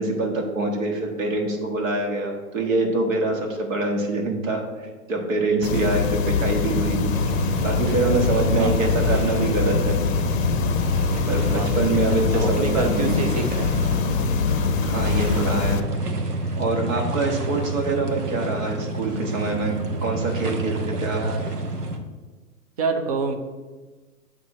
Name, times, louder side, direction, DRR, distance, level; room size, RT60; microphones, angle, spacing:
voice 1, 0.0-4.6 5.1-7.0 7.6-10.0 11.3-13.1 14.8-15.8 16.6-21.2, right 2 dB, 60° right, 2 dB, 1.7 m, -25 dB
sound 1, 5.6-15.8, left 6 dB, 60° left, 0.6 m, -24 dB
sound 2, 6.6-22.0, right 2 dB, 85° right, 1.1 m, -28 dB
voice 2, 11.5-13.7 21.1-21.5 22.8-23.3, right 4 dB, 25° right, 6 dB, 0.4 m, -28 dB
8.2 x 2.9 x 5.6 m, 1.3 s
hypercardioid pair, 135°, 46 cm